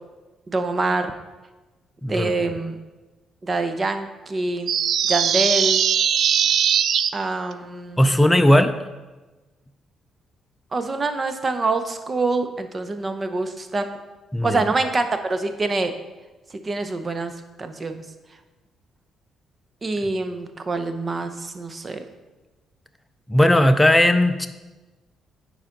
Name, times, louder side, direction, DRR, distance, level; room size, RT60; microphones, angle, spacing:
voice 1, 0.5-1.1 2.1-2.8 3.4-4.7 5.1-5.8 7.1-8.3 10.7-13.9 14.4-15.9 16.6-17.3 17.6-18.0 19.8-22.0, right 3 dB, 30° right, 8 dB, 0.8 m, -25 dB
voice 2, 2.0-2.3 8.0-8.7 14.3-14.6 23.3-24.5, left 1 dB, 10° left, 7 dB, 0.5 m, -17 dB
sound 1, 4.7-7.1, right 8 dB, 65° right, 0.3 m, -20 dB
9.7 x 4.9 x 3.9 m, 1.2 s
cardioid pair, 90°, 0 cm